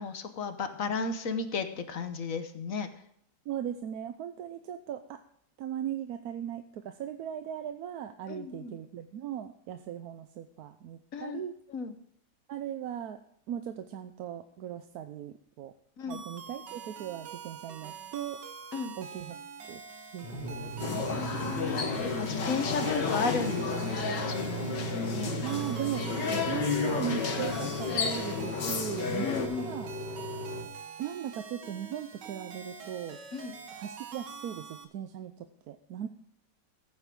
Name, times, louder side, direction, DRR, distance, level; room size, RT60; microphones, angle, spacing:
voice 1, 0.0-2.9 8.3-8.7 11.1-11.4 11.7-11.9 16.0-16.2 18.7-18.9 21.1-21.9 22.2-24.7 25.0-25.3 29.2-29.7 33.3-33.5, left 5 dB, 55° left, 8 dB, 1.3 m, -34 dB
voice 2, 3.5-5.2 5.6-11.5 12.5-13.2 13.5-15.7 16.1-18.4 19.0-19.3 19.7-19.8 20.1-21.0 25.4-29.9 31.0-33.2 33.7-36.1, right 10 dB, 65° right, 8 dB, 1.1 m, -38 dB
sound 1, 16.1-34.9, right 6 dB, 90° right, 2.0 m, -45 dB
sound 2, 20.2-30.6, right 2 dB, 35° left, 2.6 m, -38 dB
sound 3, 20.8-29.5, left 5 dB, 85° left, 2.1 m, -32 dB
15.0 x 9.2 x 3.7 m, 0.69 s
omnidirectional pair, 1.8 m